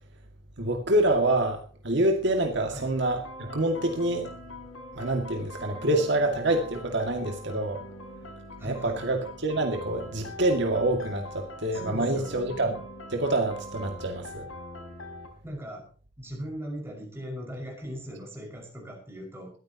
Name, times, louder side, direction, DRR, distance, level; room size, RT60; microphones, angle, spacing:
voice 1, 0.6-4.3 5.0-7.8 8.6-12.8 13.1-14.5, right 1 dB, 55° right, 3 dB, 2.2 m, -26 dB
sound 1, 3.0-15.3, left 1 dB, 75° left, 3.8 m, -43 dB
voice 2, 8.6-9.0 11.7-12.5 15.4-15.9 16.2-19.6, equal, 10° right, 0 dB, 5.6 m, -39 dB
21.0 x 14.0 x 2.9 m, 0.41 s
head